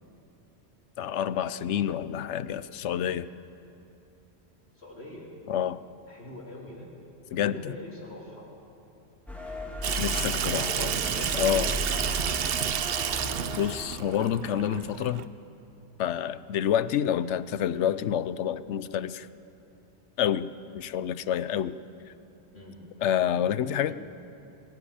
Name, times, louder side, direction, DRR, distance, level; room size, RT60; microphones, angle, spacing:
voice 1, 1.0-3.3 5.5-5.8 7.3-7.8 10.0-10.9 11.3-11.7 13.6-15.3 16.0-19.3 20.2-20.5 20.7-21.8 23.0-23.9, left 9 dB, 85° left, 15 dB, 1.0 m, -28 dB
voice 2, 4.8-5.3 6.0-6.9 7.3-8.5 10.0-12.4 22.5-22.8 23.9-24.0, left 1 dB, 65° left, -3 dB, 4.0 m, -42 dB
sound 1, 9.3-14.3, left 1 dB, ahead, 2.6 m, -36 dB
Water tap faucet / Sink (filling or washing), 9.8-15.2, right 8 dB, 60° right, 0.9 m, -30 dB
21.0 x 16.5 x 8.7 m, 2.7 s
omnidirectional pair, 1.2 m